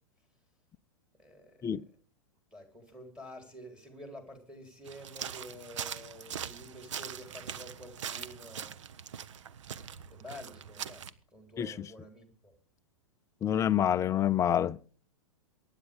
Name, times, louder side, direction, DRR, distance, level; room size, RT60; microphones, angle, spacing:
voice 1, 1.2-1.7 2.5-8.8 9.8-11.1 11.3-12.5, left 1 dB, 5° right, 4.0 m, -49 dB
sound 1, 4.9-11.1, right 8 dB, 65° right, 0.9 m, -42 dB
voice 2, 13.4-14.8, left 10 dB, 15° left, 0.5 m, -27 dB
23.5 x 9.8 x 3.6 m
figure-of-eight pair, 105°, 17 cm